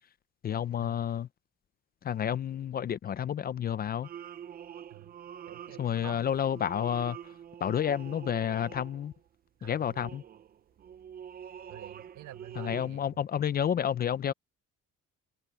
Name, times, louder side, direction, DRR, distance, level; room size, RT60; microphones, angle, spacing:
voice 1, 0.4-1.3 2.0-4.1 5.8-7.3 7.6-9.1 9.6-10.2 12.6-14.3, left 9 dB, 30° left, 0.5 m, -30 dB
sound 1, 4.0-9.3 9.7-12.9, right 9 dB, 30° right, 0.5 m, -46 dB
voice 2, 5.5-6.3 9.6-10.1 11.7-13.2, right 15 dB, 80° right, 1.7 m, -48 dB
cardioid pair, 165°, 30 cm